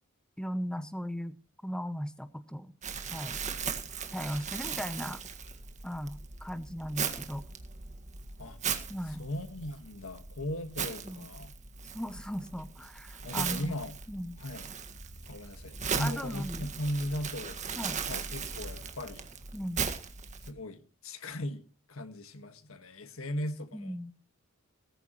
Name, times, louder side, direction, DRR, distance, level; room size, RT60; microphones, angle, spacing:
voice 1, 0.4-1.3 1.6-2.7 3.1-3.3 4.1-5.2 5.8-7.5 8.9-9.2 11.0-11.3 11.8-13.8 14.1-14.4 16.0-16.7 17.8-18.0 19.5-19.8 23.7-24.1, equal, 5° left, 0.7 m, -37 dB
Crumpling crinkling, 2.8-20.5, right 6 dB, 35° right, 1.8 m, -38 dB
voice 2, 9.0-11.5 13.2-14.0 14.4-14.7 15.2-17.6 18.1-19.2 20.4-24.2, left 1 dB, 65° left, 1.7 m, -38 dB
19.0 x 14.5 x 3.1 m
head